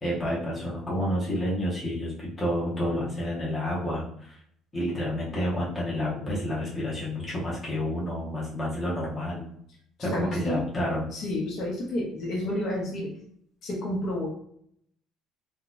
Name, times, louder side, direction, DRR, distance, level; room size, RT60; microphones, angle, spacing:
voice 1, 0.0-4.4 4.7-9.5 10.0-11.1, equal, 15° left, -6 dB, 0.8 m, -29 dB
voice 2, 10.1-10.6 11.1-13.1 13.6-14.3, left 1 dB, 55° left, -2 dB, 1.0 m, -30 dB
3.7 x 2.2 x 2.6 m, 0.69 s
cardioid pair, 155°, 0 cm